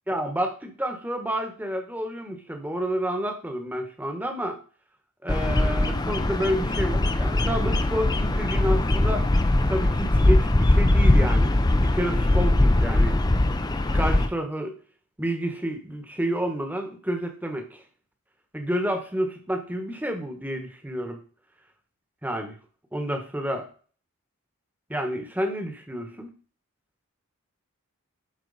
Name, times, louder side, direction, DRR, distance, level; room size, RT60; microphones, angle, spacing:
voice 1, 0.1-4.6 5.2-9.3 9.7-11.5 11.9-13.2 13.9-14.7 15.2-17.8 18.5-21.2 22.2-22.5 22.9-23.7 24.9-26.3, equal, 10° right, 4 dB, 1.2 m, -29 dB
Bird vocalization bird call bird song, 5.3-14.3, left 1 dB, 20° left, 0.5 m, -21 dB
11.5 x 4.4 x 4.1 m, 0.41 s
head